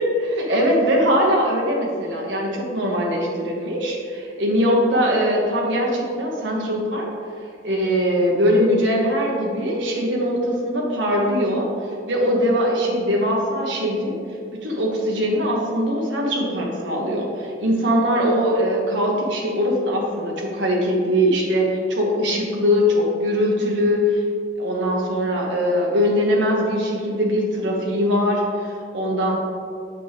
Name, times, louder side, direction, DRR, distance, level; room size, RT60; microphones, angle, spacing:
voice 1, 0.0-7.1 7.6-11.7 12.1-14.2 14.6-24.2 24.6-29.4, equal, 70° right, -2 dB, 1.1 m, -21 dB
7.9 x 6.5 x 3.4 m, 2.4 s
head